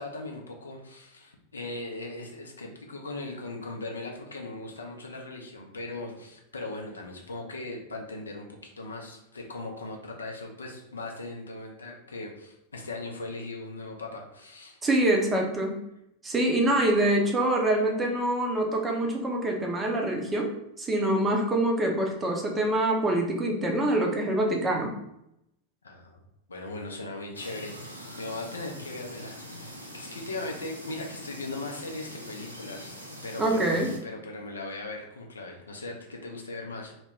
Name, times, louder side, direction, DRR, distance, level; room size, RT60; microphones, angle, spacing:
voice 1, 0.0-14.8 25.8-26.2 26.5-36.9, left 2 dB, 75° left, 1 dB, 0.5 m, -39 dB
voice 2, 14.8-15.8 16.2-25.0 33.4-33.9, right 1 dB, 15° right, 0 dB, 0.6 m, -25 dB
sound 1, 27.3-34.0, equal, 90° right, 0.4 m, -43 dB
2.1 x 2.1 x 3.4 m, 0.80 s
figure-of-eight pair, 90°, 0 cm